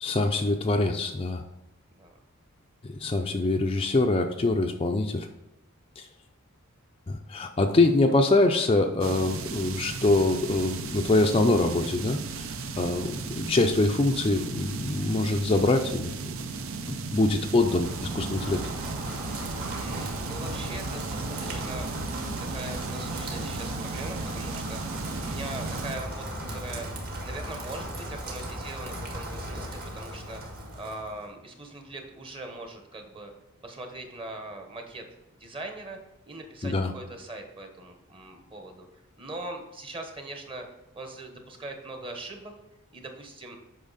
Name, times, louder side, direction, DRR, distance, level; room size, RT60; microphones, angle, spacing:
voice 1, 0.0-1.4 2.8-5.3 6.0-6.1 7.1-12.5 12.8-16.3 17.1-18.6 36.6-36.9, left 2 dB, 25° left, 4 dB, 0.4 m, -24 dB
sound 1, 9.0-26.0, right 4 dB, 65° right, 0.6 m, -36 dB
Rain, 17.5-31.3, right 1 dB, 40° right, 1.6 m, -37 dB
voice 2, 19.6-22.0 22.4-26.9 27.2-30.4 30.7-33.3 33.6-35.0 35.3-36.0 36.2-38.9 39.2-40.7 40.9-42.5 42.9-43.6, right 2 dB, 25° right, 4 dB, 1.1 m, -41 dB
8.7 x 5.6 x 4.1 m, 0.95 s
head